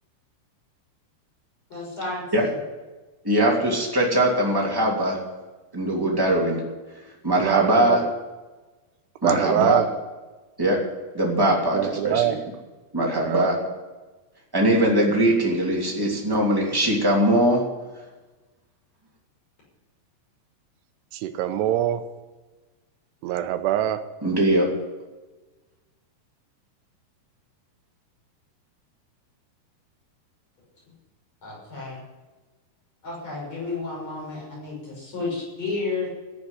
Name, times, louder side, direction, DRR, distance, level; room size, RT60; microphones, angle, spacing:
voice 1, 1.7-2.5 31.4-32.0 33.0-36.1, left 3 dB, 40° left, -4 dB, 7.1 m, -32 dB
voice 2, 3.2-5.2 5.7-6.6 7.2-8.0 9.2-9.8 10.6-10.8 11.1-12.3 12.9-13.6 14.5-17.6 24.2-24.7, right 1 dB, 10° right, -3 dB, 1.6 m, -21 dB
voice 3, 7.4-8.0 9.2-9.8 11.7-12.4 13.2-13.5 21.1-22.0 23.2-24.0, right 12 dB, 85° right, 9 dB, 2.8 m, -24 dB
14.5 x 7.7 x 10.0 m, 1.2 s
omnidirectional pair, 4.9 m